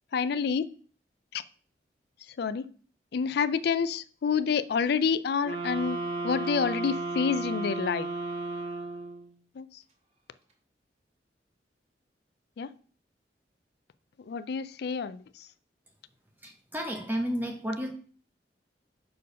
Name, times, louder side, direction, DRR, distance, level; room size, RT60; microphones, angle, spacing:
voice 1, 0.1-0.7 1.3-1.4 2.4-2.7 3.1-6.0 6.2-8.1 9.6-9.8 12.6-12.7 14.3-15.5, left 6 dB, 65° left, 0.4 m, -28 dB
sound 1, 5.4-9.3, right 2 dB, 40° right, 1.7 m, -34 dB
voice 2, 16.4-17.9, equal, 10° right, 0.7 m, -32 dB
6.6 x 4.5 x 5.2 m
head